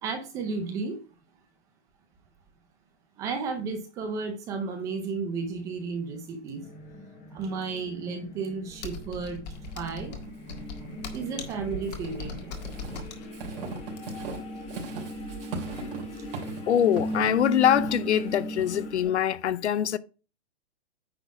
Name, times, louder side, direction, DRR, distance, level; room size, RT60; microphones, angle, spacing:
voice 1, 0.0-1.0 3.2-6.6 7.3-9.4 9.8-10.1 11.1-12.6, right 4 dB, 10° right, 0.6 m, -33 dB
sound 1, 6.6-19.1, equal, 20° left, 1.4 m, -38 dB
Computer keyboard, 8.8-14.4, left 6 dB, 35° left, 1.7 m, -40 dB
Walk footsteps / Squeak, 9.4-19.0, right 4 dB, 55° right, 3.0 m, -41 dB
voice 2, 16.7-20.0, left 10 dB, 70° left, 0.8 m, -24 dB
9.4 x 4.0 x 4.6 m
hypercardioid pair, 165°, 35 cm